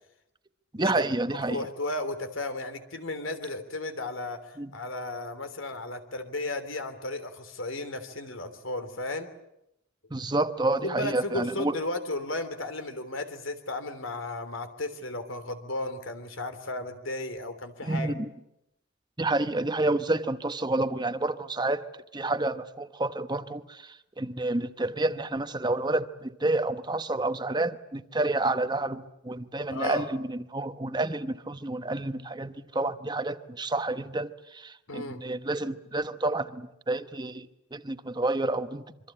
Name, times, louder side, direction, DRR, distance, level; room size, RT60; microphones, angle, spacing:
voice 1, 0.7-1.7 4.6-4.7 10.1-11.8 17.8-18.3 19.2-21.9 22.1-38.8, right 2 dB, 20° right, 10 dB, 1.0 m, -29 dB
voice 2, 1.3-9.3 10.7-18.1 29.7-30.1 34.9-35.2, left 2 dB, 80° left, 9 dB, 3.2 m, -34 dB
26.5 x 24.5 x 8.8 m, 0.84 s
head